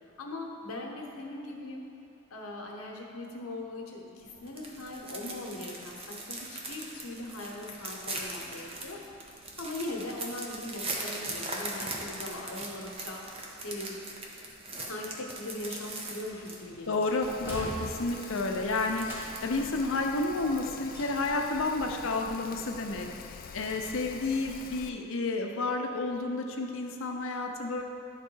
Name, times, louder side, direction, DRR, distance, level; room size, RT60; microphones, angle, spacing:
voice 1, 0.2-1.9 2.3-9.0 9.6-13.2 13.6-14.0 14.9-17.2 17.6-17.7, left 2 dB, 90° left, 0 dB, 1.0 m, -40 dB
sound 1, 4.2-19.7, right 2 dB, 30° right, 0.8 m, -41 dB
sound 2, 16.3-16.6 17.0-18.4 19.0-19.8 20.8-21.5 21.8-21.9, equal, 10° right, 1.4 m, -42 dB
voice 2, 16.9-23.1 23.5-27.8, left 3 dB, 65° left, 2 dB, 0.7 m, -31 dB
Rain, 17.2-24.9, left 6 dB, 40° left, 0.3 m, -46 dB
11.0 x 3.8 x 4.6 m, 2.7 s
head